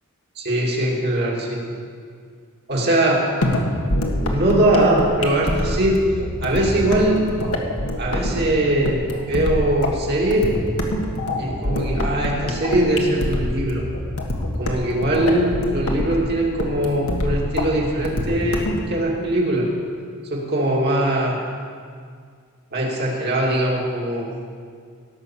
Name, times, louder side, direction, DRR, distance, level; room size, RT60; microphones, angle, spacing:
voice 1, 0.4-1.7 2.7-3.3 4.3-6.1 6.4-7.3 8.0-10.6 11.3-13.8 14.6-19.7 20.3-21.4 22.7-24.3, right 1 dB, 50° right, -2 dB, 2.5 m, -21 dB
sound 1, 3.4-18.8, left 1 dB, 80° left, 1.6 m, -25 dB
18.0 x 6.1 x 7.2 m, 2.1 s
head